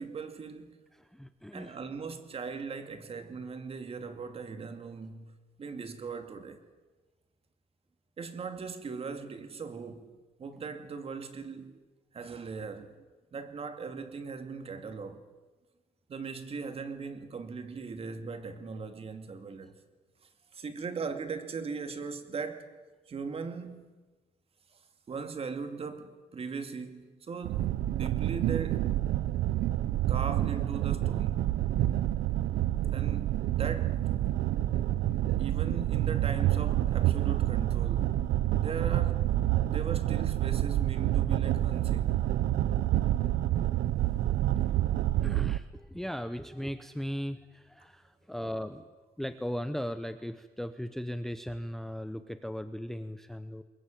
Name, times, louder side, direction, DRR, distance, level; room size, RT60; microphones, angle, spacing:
voice 1, 0.0-0.8 1.5-5.3 5.6-6.6 8.2-11.8 12.1-13.0 13.3-15.2 16.1-19.7 20.5-22.7 23.1-23.9 25.1-28.9 30.1-31.5 32.9-34.0 35.4-38.2 38.6-39.3 39.6-42.3, right 5 dB, 40° right, 2.4 m, -39 dB
voice 2, 0.9-1.8 45.2-48.9 49.2-53.6, equal, ahead, 0.8 m, -37 dB
sound 1, 27.4-45.6, right 13 dB, 80° right, 0.8 m, -28 dB
22.5 x 22.0 x 9.1 m
cardioid pair, 135°, 16 cm